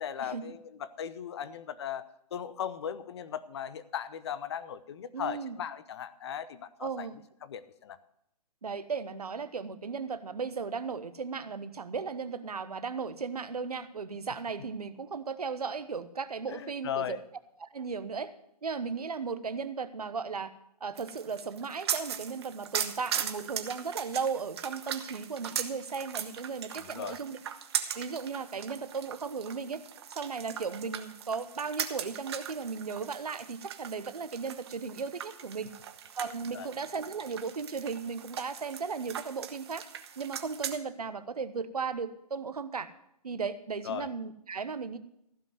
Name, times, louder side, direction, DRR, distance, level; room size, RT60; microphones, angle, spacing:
voice 1, 0.0-2.0 2.3-7.1 7.4-8.0 16.5-17.2 26.8-27.2 36.5-36.7 43.8-44.1, left 8 dB, 40° left, 14 dB, 0.8 m, -37 dB
voice 2, 5.1-5.6 6.8-7.2 8.6-17.2 17.6-18.3 18.6-20.5 20.8-27.4 27.9-29.8 30.1-35.7 36.2-39.8 40.2-42.9 43.2-45.0, right 5 dB, 70° right, 12 dB, 1.1 m, -36 dB
sound 1, 21.0-40.8, right 9 dB, 40° right, 1.1 m, -39 dB
15.0 x 5.4 x 9.2 m, 0.76 s
figure-of-eight pair, 135°, 20 cm